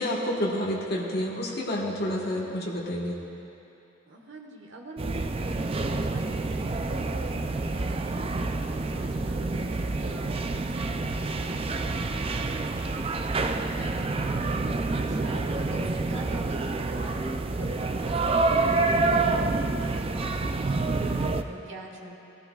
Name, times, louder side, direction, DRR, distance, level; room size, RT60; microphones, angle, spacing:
voice 1, 0.0-3.2, left 1 dB, 50° left, -4 dB, 1.5 m, -29 dB
voice 2, 4.1-14.4 15.1-22.2, right 1 dB, 65° right, 0 dB, 1.4 m, -44 dB
sound 1, 5.0-21.4, right 3 dB, 30° right, 0.4 m, -28 dB
18.0 x 15.0 x 2.4 m, 2.8 s
head